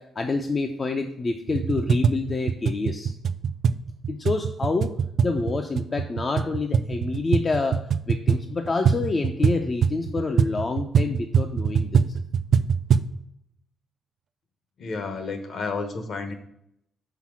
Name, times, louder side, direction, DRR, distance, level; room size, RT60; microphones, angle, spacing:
voice 1, 0.0-3.1 4.1-4.9 5.2-7.8 8.1-12.2, left 3 dB, 25° left, 5 dB, 0.5 m, -27 dB
sound 1, 1.5-13.2, right 6 dB, 50° right, 0.3 m, -24 dB
voice 2, 14.8-16.3, left 4 dB, 50° left, 7 dB, 1.0 m, -31 dB
5.8 x 4.2 x 6.0 m, 0.75 s
cardioid pair, 155°, 0 cm